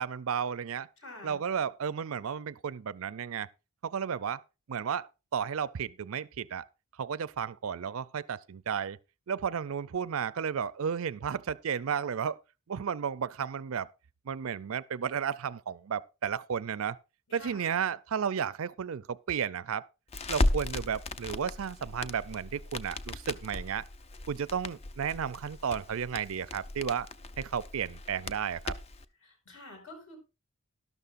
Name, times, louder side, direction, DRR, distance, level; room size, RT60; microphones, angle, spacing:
voice 1, 0.0-0.9 1.2-3.5 3.8-4.4 4.7-6.7 7.0-9.0 9.3-12.4 12.7-13.9 14.3-17.0 17.3-19.9 20.3-23.8 24.3-27.1 27.4-28.8, right 7 dB, 70° right, 0.4 m, -33 dB
voice 2, 1.0-1.4 17.3-17.7 29.2-30.2, left 2 dB, 65° left, 4.9 m, -48 dB
Crackle, 20.1-29.0, left 2 dB, 25° left, 0.4 m, -36 dB
12.5 x 12.0 x 2.5 m
head